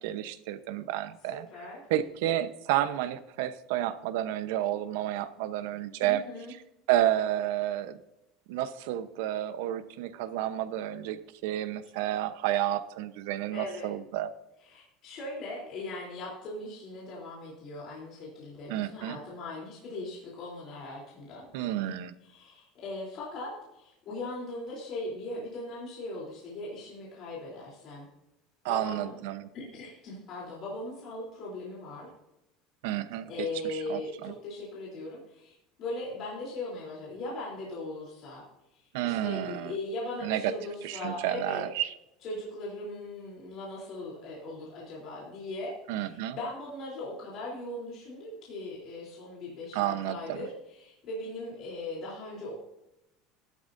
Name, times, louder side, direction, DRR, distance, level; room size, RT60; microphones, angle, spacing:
voice 1, 0.0-1.5 1.9-6.2 6.9-8.0 8.5-14.3 18.7-19.2 21.5-22.1 28.6-29.5 32.8-34.3 38.9-39.7 40.2-40.5 40.8-41.9 45.9-46.4 49.7-50.4, right 13 dB, 80° right, 12 dB, 0.9 m, -31 dB
voice 2, 1.3-1.8 6.0-6.5 13.5-13.9 14.6-21.4 21.8-21.9 22.2-28.1 28.7-29.2 29.5-32.1 33.3-38.4 38.7-41.6 42.2-52.5, left 2 dB, 40° left, -5 dB, 3.4 m, -39 dB
14.5 x 12.0 x 2.7 m, 0.90 s
cardioid pair, 170°, 0 cm